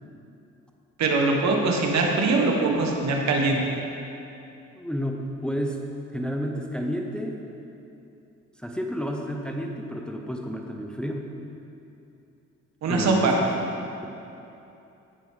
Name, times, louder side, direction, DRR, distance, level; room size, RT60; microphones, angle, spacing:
voice 1, 1.0-3.6 12.8-13.3, right 3 dB, 65° right, 1 dB, 1.5 m, -22 dB
voice 2, 4.8-5.8 6.1-7.4 8.6-11.3 12.9-13.5, equal, 5° left, 2 dB, 0.7 m, -30 dB
17.0 x 6.0 x 3.7 m, 2.8 s
cardioid pair, 90°, 30 cm